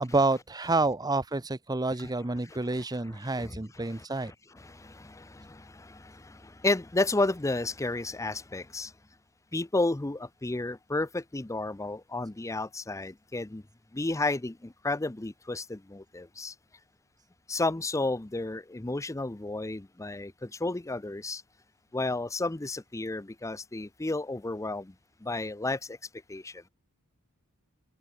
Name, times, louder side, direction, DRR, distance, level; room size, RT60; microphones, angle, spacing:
voice 1, 0.0-4.3, right 2 dB, 15° right, 0.8 m, -28 dB
voice 2, 2.7-8.9 9.5-13.6 13.9-16.5 17.5-21.4 21.9-24.9 25.2-26.0 26.3-26.7, left 2 dB, 15° left, 0.6 m, -32 dB
head